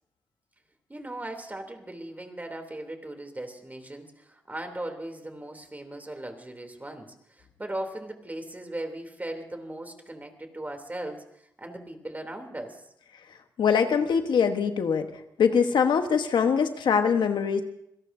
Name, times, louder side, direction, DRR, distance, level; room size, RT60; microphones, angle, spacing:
voice 1, 0.9-11.2 11.6-12.8, right 1 dB, 20° right, 5 dB, 3.2 m, -38 dB
voice 2, 13.6-15.1 15.4-17.6, left 6 dB, 80° left, 6 dB, 1.3 m, -23 dB
26.5 x 17.5 x 2.8 m, 0.74 s
cardioid pair, 60°, 8 cm